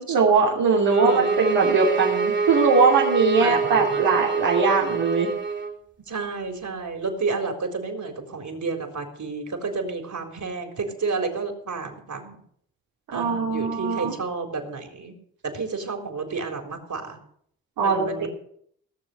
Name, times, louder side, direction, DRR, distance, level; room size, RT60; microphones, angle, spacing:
voice 1, 0.0-5.3 13.1-14.1 17.8-18.3, right 4 dB, 80° right, -4 dB, 3.0 m, -21 dB
sound 1, 0.8-5.7, right 5 dB, 30° right, 3.0 m, -25 dB
voice 2, 0.9-1.5 3.4-4.2 6.1-12.4 13.1-15.1 15.4-17.2 17.8-18.3, right 4 dB, 55° right, 4 dB, 4.1 m, -30 dB
17.5 x 7.1 x 7.8 m, 0.64 s
supercardioid pair, 45°, 36 cm